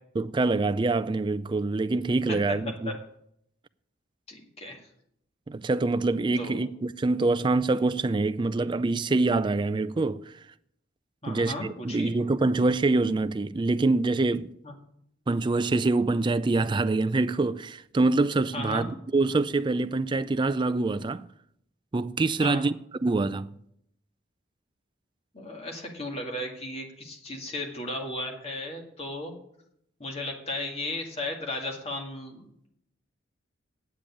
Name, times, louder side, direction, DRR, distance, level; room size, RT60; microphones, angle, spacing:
voice 1, 0.2-2.9 5.5-10.3 11.3-14.5 15.3-21.3 21.9-22.7 23.0-23.5, right 3 dB, 25° right, 0.3 m, -25 dB
voice 2, 4.3-4.8 6.4-6.6 11.2-12.1 14.6-14.7 18.5-18.9 22.4-22.7 25.3-29.3 30.0-32.7, left 1 dB, 30° left, 2.0 m, -35 dB
9.2 x 7.0 x 8.5 m
head